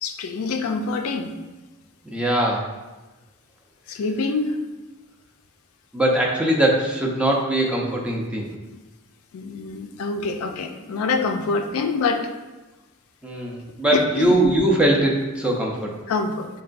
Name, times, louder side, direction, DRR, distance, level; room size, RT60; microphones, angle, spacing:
voice 1, 0.0-1.3 3.9-4.6 9.3-12.3 13.9-14.4 16.1-16.5, left 4 dB, 75° left, 6 dB, 0.4 m, -25 dB
voice 2, 2.1-2.6 5.9-8.5 13.2-15.9, right 1 dB, 5° right, -2 dB, 0.5 m, -21 dB
6.5 x 2.2 x 2.5 m, 1.2 s
head